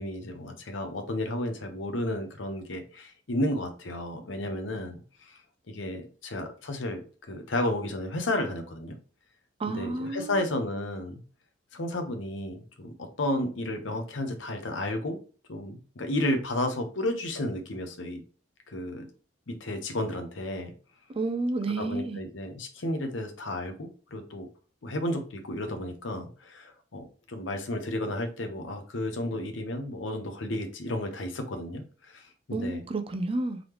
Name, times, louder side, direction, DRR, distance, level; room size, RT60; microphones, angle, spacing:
voice 1, 0.0-5.4 5.7-9.0 9.7-11.1 11.7-15.2 15.5-18.2 18.7-19.1 19.5-20.7 21.8-24.5 24.8-32.8, left 1 dB, 85° left, 0.8 m, -32 dB
voice 2, 9.6-10.4 21.1-22.2 32.5-33.6, right 2 dB, 30° right, 0.4 m, -30 dB
3.9 x 3.3 x 3.0 m
head